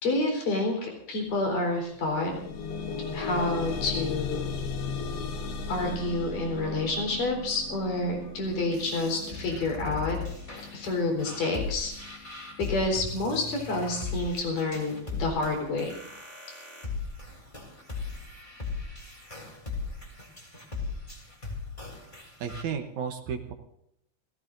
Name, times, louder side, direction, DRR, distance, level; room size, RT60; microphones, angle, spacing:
voice 1, 0.0-2.3 3.1-4.5 5.7-10.2 10.7-12.3 12.6-15.9, left 2 dB, 60° left, 2 dB, 5.6 m, -29 dB
sound 1, 1.3-1.4 1.8-12.8 13.6-13.7 14.2-14.3, left 4 dB, 85° left, 3.5 m, -37 dB
sound 2, 8.5-22.6, left 4 dB, 15° left, 2.8 m, -38 dB
voice 2, 22.4-23.5, right 7 dB, 70° right, 6 dB, 1.9 m, -33 dB
28.5 x 17.0 x 2.6 m, 0.77 s
omnidirectional pair, 4.4 m